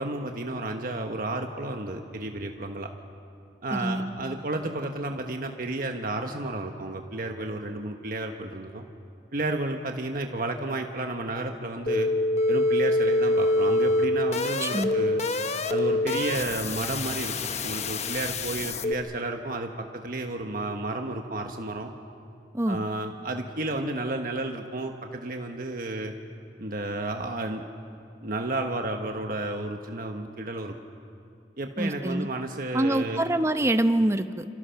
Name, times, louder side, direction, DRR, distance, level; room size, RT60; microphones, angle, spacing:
voice 1, 0.0-2.9 3.6-8.8 9.3-12.1 12.5-15.3 15.7-17.3 17.6-21.9 22.7-26.1 26.6-27.6 28.2-30.7 31.6-33.2, right 2 dB, 55° right, 4 dB, 1.3 m, -32 dB
voice 2, 3.7-4.1 14.6-15.0 22.5-22.8 31.8-32.3 32.7-34.5, right 1 dB, 15° right, 9 dB, 0.8 m, -25 dB
sound 1, 11.9-18.9, left 2 dB, 40° left, 1.0 m, -25 dB
28.5 x 26.0 x 5.9 m, 2.5 s
head